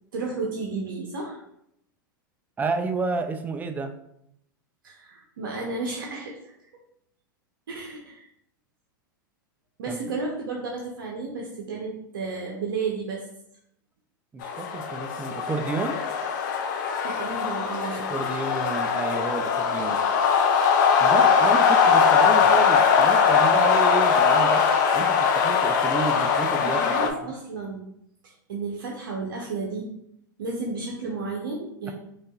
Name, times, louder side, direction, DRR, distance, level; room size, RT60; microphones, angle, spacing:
voice 1, 0.1-1.4 4.8-6.7 7.7-8.3 9.8-13.2 17.0-18.0 26.6-27.8 28.2-29.9 30.4-31.9, right 3 dB, 70° right, -1 dB, 0.7 m, -32 dB
voice 2, 2.6-3.9 9.9-10.0 14.3-16.0 18.1-20.0 21.0-24.6 24.9-27.3, right 4 dB, 15° right, 7 dB, 0.3 m, -30 dB
sound 1, 14.4-27.1, left 6 dB, 60° left, 0.5 m, -21 dB
5.2 x 2.4 x 2.3 m, 0.76 s
hypercardioid pair, 100°, 11 cm